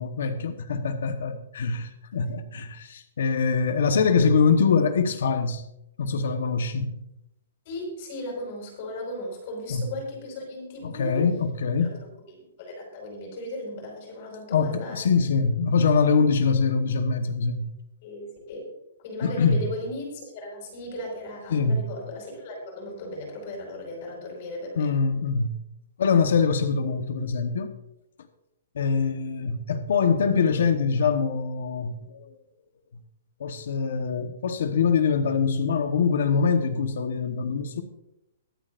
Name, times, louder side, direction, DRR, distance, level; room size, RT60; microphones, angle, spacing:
voice 1, 0.0-5.6 6.0-7.0 9.7-9.8 10.8-11.9 14.5-17.7 19.2-19.6 21.5-21.9 24.7-25.6 26.0-27.7 28.7-32.3 33.4-37.8, left 5 dB, 60° left, 1.2 m, -24 dB
voice 2, 7.7-11.3 11.8-11.9 12.3-15.1 18.0-18.7 19.0-24.9, left 1 dB, 35° left, 5.3 m, -36 dB
23.0 x 8.6 x 2.6 m
hypercardioid pair, 175°, 0 cm